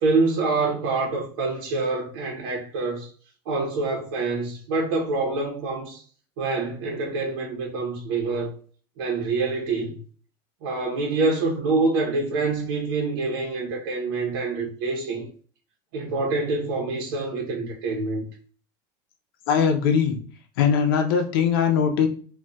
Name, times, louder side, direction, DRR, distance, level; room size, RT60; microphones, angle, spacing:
voice 1, 0.0-3.1 3.5-6.0 6.4-8.5 9.0-10.0 10.6-15.3 15.9-18.3, right 3 dB, 75° right, 0.8 m, -26 dB
voice 2, 19.5-20.2 20.6-22.1, left 7 dB, 90° left, 0.6 m, -20 dB
4.0 x 2.3 x 2.2 m
supercardioid pair, 165°, 12 cm